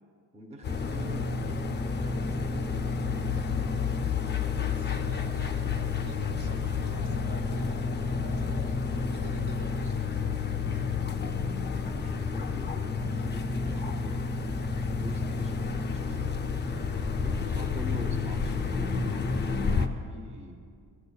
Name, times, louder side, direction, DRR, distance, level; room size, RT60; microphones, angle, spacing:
voice 1, 0.3-2.7 10.2-14.2 14.9-16.4 17.2-20.6, right 1 dB, 15° right, 3 dB, 0.6 m, -45 dB
sound 1, 0.6-19.9, left 5 dB, 25° left, 0.4 m, -30 dB
voice 2, 4.5-5.7 6.0-9.9 17.4-18.0, right 4 dB, 55° right, 3 dB, 0.9 m, -47 dB
sound 2, 7.8-20.0, right 3 dB, 85° right, 0.9 m, -51 dB
13.0 x 6.8 x 2.3 m, 2.2 s
cardioid pair, 100°, 42 cm